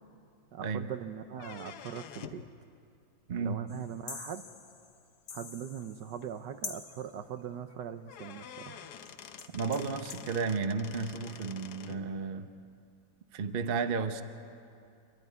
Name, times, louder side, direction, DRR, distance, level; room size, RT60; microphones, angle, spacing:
voice 1, 0.5-2.4 3.4-4.4 5.3-8.9, right 8 dB, 70° right, 9 dB, 1.3 m, -41 dB
sound 1, 1.3-2.5 4.3-4.4 5.3-5.4 5.8-5.9 6.2-6.3 7.7-7.8 8.1-12.0, left 8 dB, 60° left, 1.2 m, -48 dB
voice 2, 3.3-3.6 9.5-12.5 13.3-14.2, right 5 dB, 55° right, 8 dB, 0.6 m, -33 dB
sound 2, 3.7-6.4 6.6-7.2 9.0-9.1 9.4-10.3, left 5 dB, 45° left, 1.3 m, -45 dB
28.5 x 12.5 x 9.5 m, 2.5 s
omnidirectional pair, 2.1 m